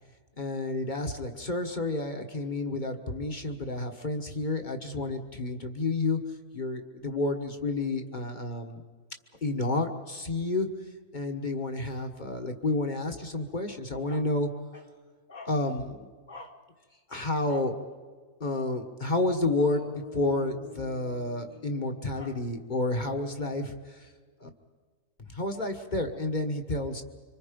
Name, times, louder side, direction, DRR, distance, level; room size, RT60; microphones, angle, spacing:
voice 1, 0.4-6.2 6.5-8.8 9.4-10.7 11.1-14.8 15.3-16.5 17.1-17.7 18.4-24.1 24.4-24.5 25.3-27.0, left 2 dB, 30° left, 5 dB, 1.5 m, -30 dB
sound 1, 19.6-23.9, left 6 dB, 85° left, 1.9 m, -48 dB
26.0 x 25.5 x 5.2 m, 1.5 s
omnidirectional pair, 1.6 m